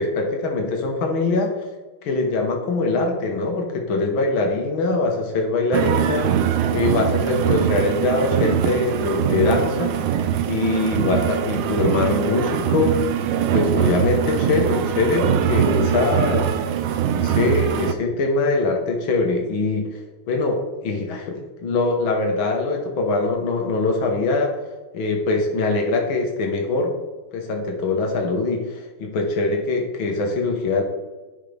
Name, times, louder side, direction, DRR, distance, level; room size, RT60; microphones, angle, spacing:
voice 1, 0.0-1.7 2.0-6.3 6.7-9.9 10.5-13.0 13.4-16.5 17.1-20.0 20.3-24.5 24.9-26.9 27.3-30.8, left 3 dB, 65° left, 2 dB, 2.1 m, -23 dB
sound 1, 5.7-17.9, right 9 dB, 80° right, 1.5 m, -22 dB
10.5 x 5.7 x 3.4 m, 1.2 s
omnidirectional pair, 2.4 m